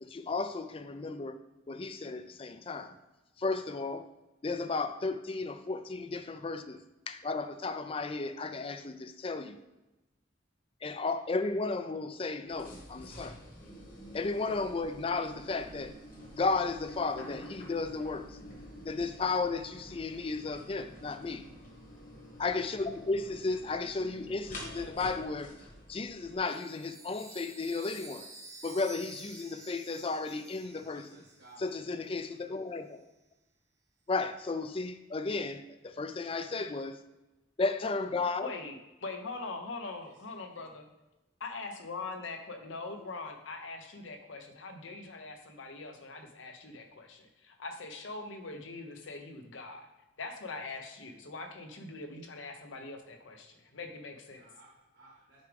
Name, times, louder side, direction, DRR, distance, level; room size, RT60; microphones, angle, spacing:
voice 1, 0.0-1.4 1.7-2.9 3.4-4.1 4.4-6.8 7.1-9.6 10.8-13.4 14.1-15.9 16.4-18.4 18.8-21.4 22.4-25.5 25.9-28.3 28.6-31.0 31.6-33.0 34.1-37.0 37.6-38.5, left 3 dB, 30° left, 10 dB, 0.4 m, -34 dB
sound 1, 12.5-26.4, equal, 45° left, 1.3 m, -48 dB
Chime, 26.4-31.9, right 3 dB, 15° right, 0.7 m, -51 dB
voice 2, 30.7-31.7 40.0-40.7 53.8-53.9 54.3-55.4, right 1 dB, 70° right, -7 dB, 1.8 m, -59 dB
voice 3, 38.4-40.9 41.4-49.9 50.2-54.5, left 3 dB, 85° left, 5 dB, 0.9 m, -42 dB
6.4 x 4.9 x 3.5 m, 1.0 s
head